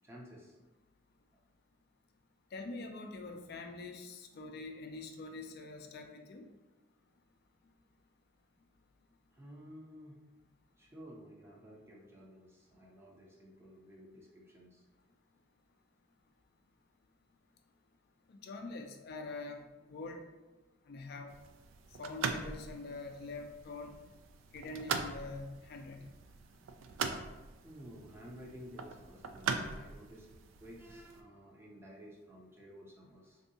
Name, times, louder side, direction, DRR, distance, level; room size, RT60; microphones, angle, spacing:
voice 1, 0.0-0.6 9.3-10.3 10.8-14.8 27.6-30.3 30.6-33.4, equal, 15° right, -2 dB, 0.5 m, -53 dB
voice 2, 2.5-6.5 18.3-19.6 19.9-20.2 20.9-21.3 22.0-23.9 24.5-26.0, left 3 dB, 55° left, 4 dB, 0.3 m, -44 dB
sound 1, 21.3-31.2, right 5 dB, 85° right, 0.3 m, -42 dB
3.4 x 2.7 x 2.7 m, 1.2 s
head